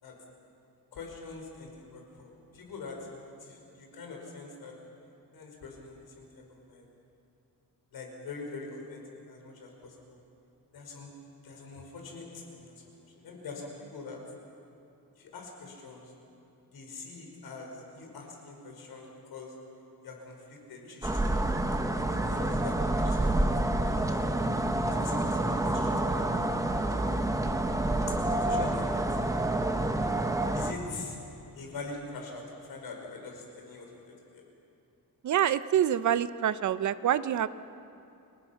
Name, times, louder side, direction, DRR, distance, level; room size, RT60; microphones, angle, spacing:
voice 1, 0.9-3.0 3.4-4.7 5.3-6.9 7.9-10.2 10.7-11.1 11.4-12.7 13.1-14.2 15.2-16.0 16.7-19.5 20.0-21.3 21.9-24.3 24.9-26.9 28.1-29.0 30.5-31.2 31.6-33.9 34.3-34.4, left 3 dB, 90° left, 1 dB, 5.3 m, -44 dB
sound 1, 21.0-30.7, right 1 dB, 10° right, 1.0 m, -28 dB
voice 2, 35.2-37.5, right 10 dB, 55° right, 14 dB, 0.7 m, -26 dB
30.0 x 20.0 x 5.9 m, 2.8 s
wide cardioid pair, 155°, 36 cm